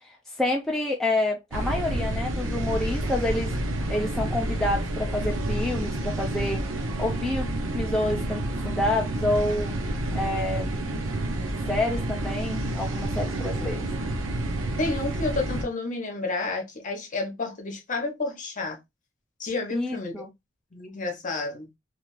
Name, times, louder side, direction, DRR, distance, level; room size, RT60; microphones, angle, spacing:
voice 1, 0.0-3.6 3.9-6.7 7.0-7.5 7.7-9.7 10.1-10.7 11.7-13.9 19.7-20.3, left 1 dB, ahead, 0.3 m, -28 dB
sound 1, 1.5-15.6, right 1 dB, 70° right, 0.6 m, -29 dB
voice 2, 14.8-18.8 19.4-20.1 20.7-21.7, left 3 dB, 40° left, 0.8 m, -30 dB
2.4 x 2.4 x 3.0 m
head